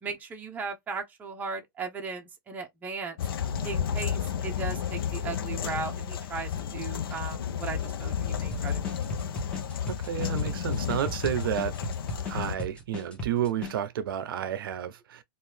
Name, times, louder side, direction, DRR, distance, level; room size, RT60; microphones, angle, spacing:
voice 1, 0.0-3.2 3.6-9.0, right 4 dB, 15° right, 0.7 m, -37 dB
sound 1, 3.2-12.5, left 8 dB, 85° left, 0.5 m, -32 dB
sound 2, 8.5-13.7, left 1 dB, 10° left, 1.0 m, -37 dB
voice 2, 9.9-11.8 12.3-15.2, right 10 dB, 80° right, 0.5 m, -31 dB
2.6 x 2.4 x 3.3 m
hypercardioid pair, 140°, 12 cm